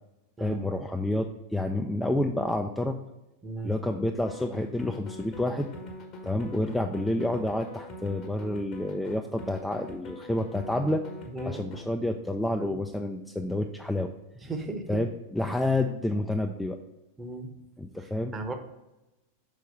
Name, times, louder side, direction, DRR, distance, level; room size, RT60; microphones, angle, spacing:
voice 1, 0.4-3.0 3.6-5.7 6.2-11.0 11.5-14.1 14.9-16.8 17.8-18.3, left 1 dB, 5° left, 3 dB, 0.4 m, -29 dB
voice 2, 3.4-3.7 6.4-6.6 11.3-11.6 12.6-12.8 14.4-15.0 17.2-17.5 18.0-18.5, right 2 dB, 15° right, 6 dB, 0.9 m, -36 dB
sound 1, 4.3-11.8, left 2 dB, 35° left, 1.1 m, -43 dB
6.2 x 4.5 x 5.2 m, 0.97 s
figure-of-eight pair, 90°, 0 cm